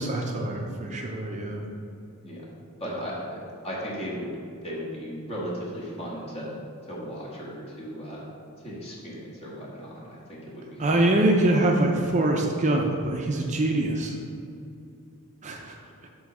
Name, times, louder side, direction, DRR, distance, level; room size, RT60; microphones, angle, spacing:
voice 1, 0.0-1.7 2.9-3.0 10.8-14.1 15.4-15.7, right 1 dB, 35° right, 1 dB, 0.5 m, -24 dB
voice 2, 2.8-3.4 3.6-4.4 4.6-6.6 6.9-8.2 8.6-10.7, equal, 30° left, -5 dB, 1.6 m, -36 dB
7.7 x 3.1 x 6.0 m, 2.5 s
head